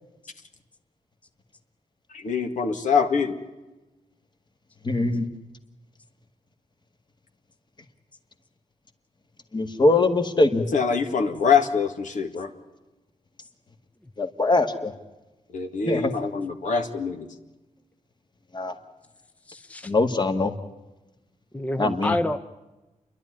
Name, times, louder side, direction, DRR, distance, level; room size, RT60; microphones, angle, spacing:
voice 1, 2.1-3.4 10.7-12.5 15.5-17.3, left 6 dB, 70° left, 5 dB, 2.0 m, -24 dB
voice 2, 4.8-5.3 9.5-10.7 14.2-14.9 15.9-16.1 18.5-18.7 19.8-20.5 21.8-22.2, left 2 dB, 35° left, 7 dB, 1.8 m, -22 dB
voice 3, 19.5-19.9 21.5-22.4, left 1 dB, 10° left, 9 dB, 0.7 m, -28 dB
29.5 x 11.5 x 9.9 m, 1.1 s
wide cardioid pair, 110°, 13 cm